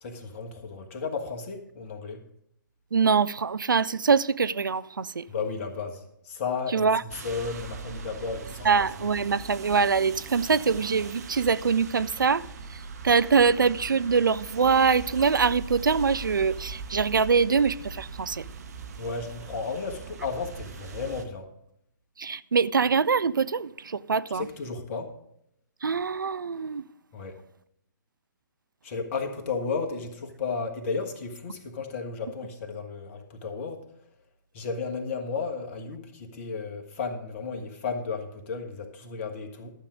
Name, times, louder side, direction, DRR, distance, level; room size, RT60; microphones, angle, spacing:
voice 1, 0.0-2.2 5.3-8.7 19.0-21.5 24.3-25.1 27.1-27.4 28.8-33.8 34.5-39.7, left 4 dB, 35° left, 1.6 m, -33 dB
voice 2, 2.9-5.2 6.7-7.0 8.6-18.5 22.2-24.5 25.8-26.8, right 5 dB, 70° right, 0.4 m, -24 dB
sound 1, 7.1-21.3, right 5 dB, 50° right, 1.3 m, -41 dB
12.5 x 7.5 x 5.1 m
figure-of-eight pair, 130°, 11 cm